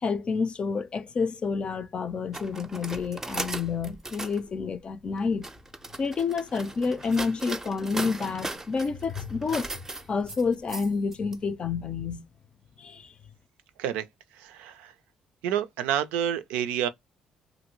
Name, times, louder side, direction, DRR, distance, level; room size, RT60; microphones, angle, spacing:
voice 1, 0.0-5.5 6.0-9.7 10.1-12.2 12.8-13.1, left 5 dB, 45° left, 0.5 m, -29 dB
sound 1, 2.3-4.4 5.2-11.3, right 2 dB, 20° right, 0.5 m, -37 dB
voice 2, 14.4-14.9 15.4-16.9, right 10 dB, 85° right, 0.4 m, -28 dB
2.6 x 2.6 x 2.9 m
supercardioid pair, 55°, 2 cm